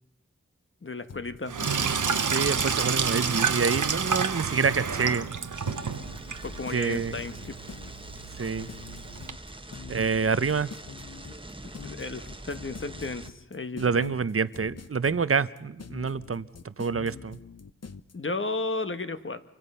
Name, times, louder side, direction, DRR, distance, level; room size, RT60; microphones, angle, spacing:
voice 1, 0.8-1.6 6.4-7.6 11.6-14.1 18.1-19.4, left 3 dB, 40° left, 10 dB, 1.4 m, -34 dB
sound 1, 1.1-18.1, left 5 dB, 55° left, 1.0 m, -45 dB
Sink (filling or washing), 1.5-9.3, right 6 dB, 80° right, 1.1 m, -29 dB
voice 2, 2.3-5.3 6.7-7.1 8.4-8.7 9.9-10.7 13.8-16.5 16.8-17.4, right 5 dB, 45° right, 16 dB, 0.8 m, -27 dB
sound 2, 5.5-13.3, right 1 dB, 15° right, 1.3 m, -44 dB
28.5 x 24.5 x 5.6 m, 0.85 s
wide cardioid pair, 50°, 30 cm